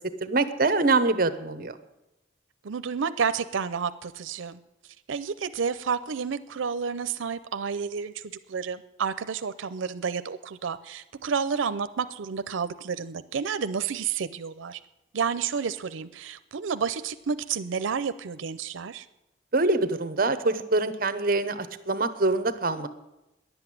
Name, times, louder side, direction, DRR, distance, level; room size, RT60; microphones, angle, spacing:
voice 1, 0.2-1.8 19.5-22.9, right 3 dB, 45° right, 12 dB, 0.8 m, -24 dB
voice 2, 2.6-4.6 5.1-14.8 15.1-19.1, right 6 dB, 85° right, 13 dB, 0.5 m, -30 dB
11.0 x 8.0 x 9.9 m, 0.96 s
head